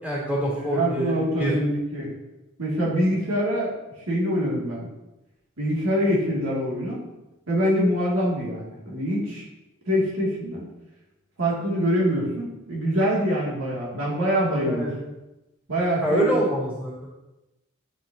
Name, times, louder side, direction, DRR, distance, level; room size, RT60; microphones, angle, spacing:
voice 1, 0.0-1.5 14.6-14.9 16.0-17.1, right 1 dB, 10° right, -7 dB, 3.1 m, -25 dB
voice 2, 0.6-2.1 2.6-4.9 5.6-7.0 7.5-9.4 9.9-10.7 11.4-14.9 15.7-16.4, equal, 65° right, -5 dB, 2.6 m, -24 dB
9.4 x 7.5 x 2.9 m, 0.98 s
head